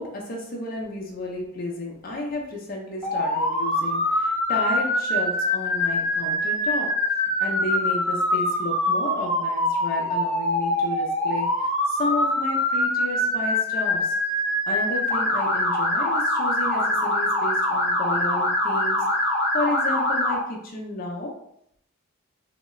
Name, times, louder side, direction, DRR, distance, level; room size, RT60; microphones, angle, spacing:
voice 1, 0.0-6.9 7.4-14.2 14.7-19.0 19.5-21.3, left 2 dB, 40° left, -2 dB, 0.5 m, -32 dB
Motor vehicle (road) / Siren, 3.0-20.3, left 1 dB, ahead, 1.2 m, -24 dB
2.9 x 2.3 x 3.1 m, 0.74 s
head